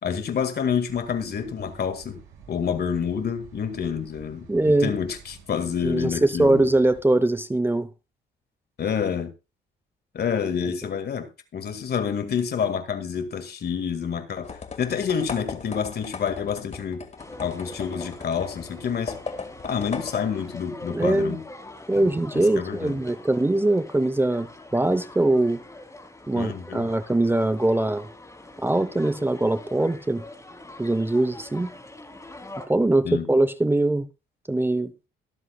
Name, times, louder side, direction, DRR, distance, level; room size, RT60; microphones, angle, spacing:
voice 1, 0.0-2.2 2.5-6.7 8.8-9.3 10.1-17.0 17.4-19.2 19.6-21.4 22.0-22.1 22.3-23.0 26.4-26.9 33.0-33.3, left 7 dB, 55° left, 1.9 m, -28 dB
sound 1, 0.9-7.0, right 6 dB, 90° right, 7.2 m, -50 dB
voice 2, 4.5-4.9 5.8-7.9 20.9-21.4 21.9-25.6 26.3-28.1 28.6-30.2 30.8-31.7 32.7-34.1 34.5-34.9, right 2 dB, 10° right, 0.8 m, -22 dB
sound 2, 14.4-20.6, left 4 dB, 35° left, 1.8 m, -38 dB
sound 3, 17.2-32.7, left 2 dB, 15° left, 3.0 m, -44 dB
23.0 x 7.7 x 2.3 m
cardioid pair, 90°, 20 cm